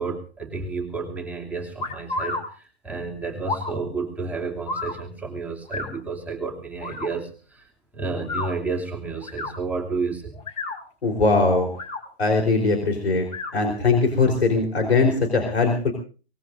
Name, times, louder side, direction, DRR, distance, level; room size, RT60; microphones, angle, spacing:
voice 1, 0.0-10.4 14.6-14.7, right 4 dB, 5° right, -2 dB, 2.9 m, -31 dB
sound 1, 1.8-2.4 3.4-3.7 4.7-4.9 5.7-5.9 6.8-7.1 8.2-8.5 9.2-9.5 10.3-10.8 11.6-12.0 13.3-13.5, left 3 dB, 20° left, 4.3 m, -30 dB
voice 2, 11.0-11.7 12.2-13.3 13.5-15.9, left 3 dB, 80° left, 2 dB, 4.3 m, -20 dB
23.0 x 20.0 x 2.7 m, 0.39 s
hypercardioid pair, 125°, 32 cm